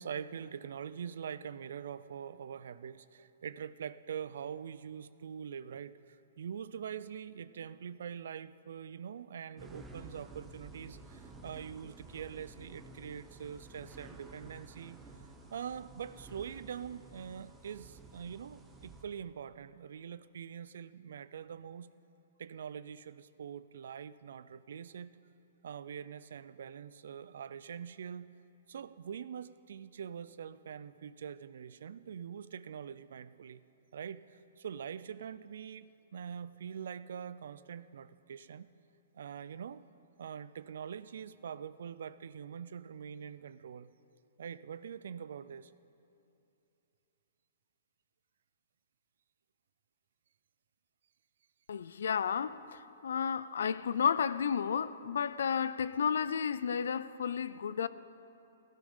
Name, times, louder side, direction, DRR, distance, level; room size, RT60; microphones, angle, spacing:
voice 1, 0.0-15.0 15.5-21.9 22.4-25.1 25.6-28.3 28.7-33.6 33.9-38.7 39.1-39.8 40.2-43.9 44.4-45.7, right 8 dB, 70° right, 0.5 m, -44 dB
sound 1, 9.6-19.0, right 3 dB, 10° right, 1.3 m, -52 dB
voice 2, 51.7-57.9, left 7 dB, 75° left, 0.5 m, -32 dB
15.5 x 13.5 x 5.5 m
hypercardioid pair, 140°, 0 cm